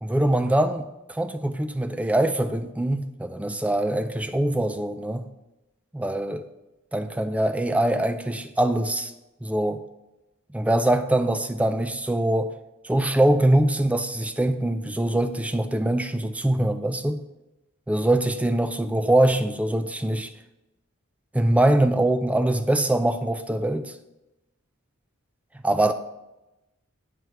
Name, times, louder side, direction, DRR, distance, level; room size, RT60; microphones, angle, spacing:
voice 1, 0.0-5.3 5.9-6.4 6.9-9.1 9.4-9.8 10.5-12.5 12.8-17.2 17.9-20.3 21.3-23.9 25.6-25.9, right 1 dB, 5° right, 0.3 m, -23 dB
9.1 x 3.2 x 5.6 m
head